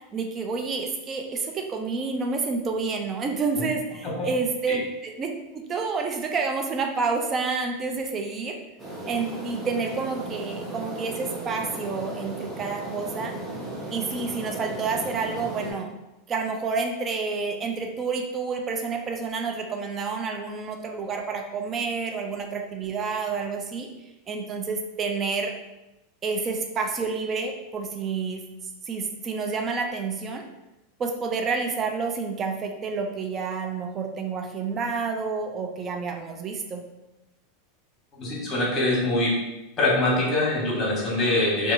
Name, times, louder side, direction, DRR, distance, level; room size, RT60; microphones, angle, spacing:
voice 1, 0.1-8.6 9.1-13.3 13.9-15.9 16.3-23.9 24.3-25.5 26.2-28.4 28.9-30.4 31.0-36.8, right 4 dB, 30° right, 3 dB, 0.3 m, -29 dB
sound 1, 8.8-15.7, right 2 dB, 10° right, 0.8 m, -36 dB
voice 2, 38.2-39.3 39.8-41.7, left 2 dB, 30° left, -4 dB, 1.3 m, -23 dB
2.7 x 2.3 x 2.6 m, 0.97 s
hypercardioid pair, 100°, 0 cm